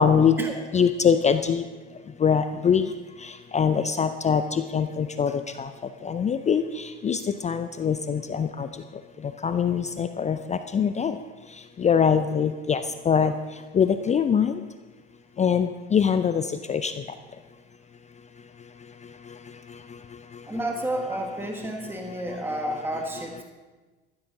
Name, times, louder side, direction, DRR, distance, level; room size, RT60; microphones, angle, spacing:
voice 1, 0.0-0.3 0.7-1.6 2.2-2.9 3.5-5.3 5.6-5.7 6.0-6.6 7.0-8.7 9.4-11.1 11.8-12.8 13.1-13.3 13.7-14.5 15.4-16.4 16.7-16.9, left 7 dB, 20° left, 10 dB, 0.5 m, -22 dB
voice 2, 20.5-23.4, right 1 dB, 5° right, 2 dB, 1.6 m, -31 dB
14.5 x 12.5 x 3.9 m, 1.3 s
hypercardioid pair, 75°, 34 cm